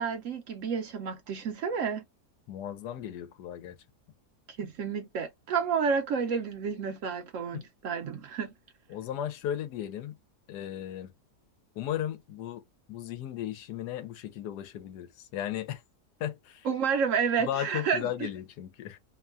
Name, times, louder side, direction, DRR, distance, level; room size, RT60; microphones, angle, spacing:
voice 1, 0.0-2.0 4.6-8.5 16.6-18.3, right 6 dB, 70° right, 0.8 m, -30 dB
voice 2, 2.5-3.8 7.5-7.6 8.9-10.1 10.5-11.1 11.8-12.6 12.9-15.8 16.2-16.7 17.4-19.0, left 11 dB, 90° left, 1.2 m, -35 dB
2.9 x 2.2 x 2.4 m
omnidirectional pair, 1.7 m